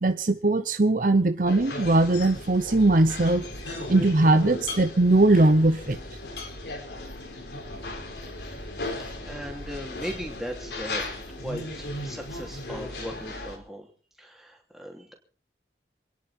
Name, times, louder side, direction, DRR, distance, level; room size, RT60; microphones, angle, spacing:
voice 1, 0.0-3.5 3.9-6.0, right 2 dB, 45° right, 0.8 m, -20 dB
sound 1, 1.5-13.6, left 2 dB, 75° left, 3.9 m, -36 dB
voice 2, 9.2-11.1 11.4-13.9 14.2-15.1, equal, ahead, 3.0 m, -38 dB
28.0 x 10.5 x 4.4 m
head